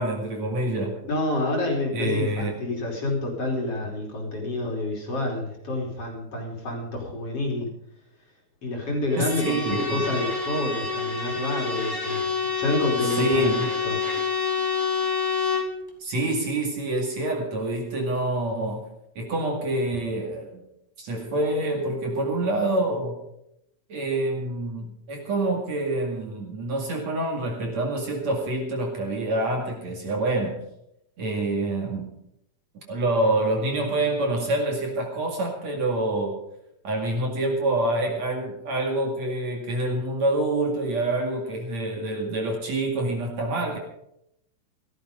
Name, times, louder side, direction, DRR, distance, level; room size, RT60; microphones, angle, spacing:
voice 1, 0.0-0.9 1.9-2.5 9.2-10.1 13.0-13.7 16.0-18.9 19.2-20.6 21.0-23.2 23.9-30.6 31.2-32.1 32.9-36.4 36.8-43.8, right 2 dB, 50° right, 1 dB, 3.2 m, -26 dB
voice 2, 1.0-7.7 8.6-12.2 12.5-13.5 13.8-14.0, left 2 dB, 40° left, 0 dB, 3.8 m, -28 dB
Bowed string instrument, 9.1-15.8, left 5 dB, 10° left, 1.8 m, -27 dB
16.0 x 13.5 x 5.2 m, 0.77 s
omnidirectional pair, 4.3 m